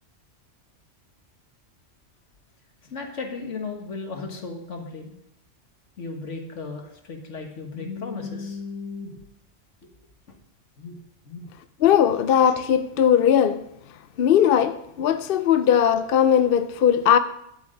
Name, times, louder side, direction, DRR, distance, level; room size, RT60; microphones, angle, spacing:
voice 1, 2.9-5.1 6.0-9.2 10.8-11.0 11.3-11.4, left 4 dB, 80° left, 1.9 m, -35 dB
voice 2, 11.8-13.6 14.2-17.2, left 9 dB, 60° left, 0.7 m, -19 dB
11.0 x 8.1 x 5.1 m
omnidirectional pair, 1.2 m